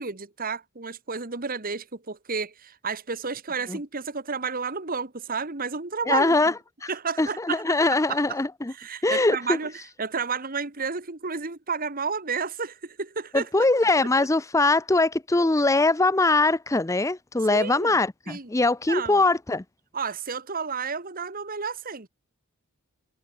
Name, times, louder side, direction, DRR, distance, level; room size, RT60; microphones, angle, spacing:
voice 1, 0.0-6.5 6.9-7.8 8.1-8.2 8.7-9.7 10.0-13.5 17.5-17.9 18.3-18.5 18.9-19.2 19.9-22.1, right 5 dB, 40° right, 1.6 m, -31 dB
voice 2, 6.1-6.5 6.8-6.9 7.2-8.7 9.0-9.6 13.3-19.6, left 2 dB, 15° left, 0.6 m, -22 dB
head